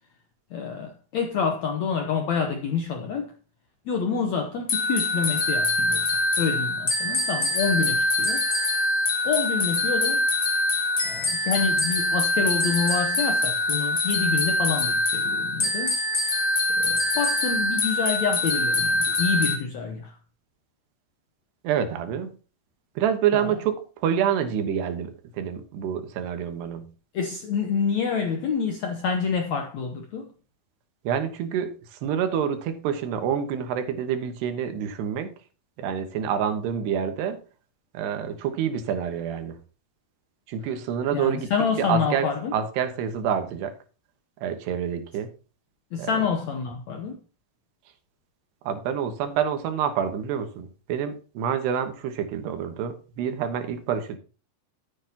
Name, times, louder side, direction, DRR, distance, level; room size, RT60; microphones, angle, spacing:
voice 1, 0.5-3.3 3.8-6.0 6.4-8.4 9.2-10.2 11.0-16.0 16.8-20.2 23.3-23.5 27.1-30.3 41.1-42.5 45.9-47.2, left 6 dB, 85° left, 1.5 m, -27 dB
sound 1, 4.7-19.6, left 2 dB, 35° left, 1.4 m, -24 dB
voice 2, 21.6-22.3 23.0-26.9 31.0-35.3 35.8-37.4 37.9-39.6 40.5-41.5 41.8-43.7 44.4-45.3 46.0-46.1 48.6-54.2, right 8 dB, 80° right, 3.3 m, -27 dB
13.5 x 9.1 x 2.9 m
omnidirectional pair, 4.8 m